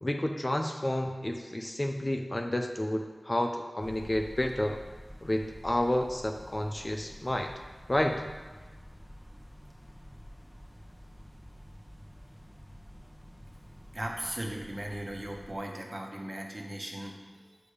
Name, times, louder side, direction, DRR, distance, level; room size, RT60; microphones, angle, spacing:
voice 1, 0.0-4.8 5.2-7.5 7.9-8.2, left 1 dB, 25° left, 4 dB, 0.6 m, -30 dB
sound 1, 3.8-15.5, equal, 10° left, 1.2 m, -49 dB
voice 2, 13.9-17.6, right 1 dB, 35° right, 0 dB, 1.3 m, -38 dB
7.1 x 6.8 x 5.1 m, 1.3 s
wide cardioid pair, 70°, 0 cm